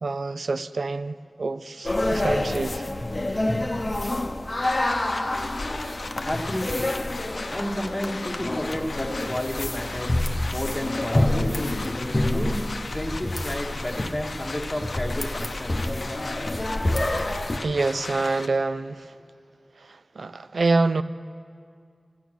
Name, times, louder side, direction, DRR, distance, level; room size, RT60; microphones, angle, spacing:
voice 1, 0.0-2.8 17.6-19.2 19.8-21.0, right 3 dB, 75° right, 0.4 m, -26 dB
sound 1, 1.8-17.6, left 1 dB, 35° left, 0.8 m, -28 dB
sound 2, 4.6-18.5, left 3 dB, 60° left, 0.6 m, -37 dB
voice 2, 6.2-6.9 7.5-10.2 10.5-11.6 12.1-15.9, left 1 dB, 10° left, 1.4 m, -31 dB
16.0 x 9.4 x 6.3 m
wide cardioid pair, 80°, 0 cm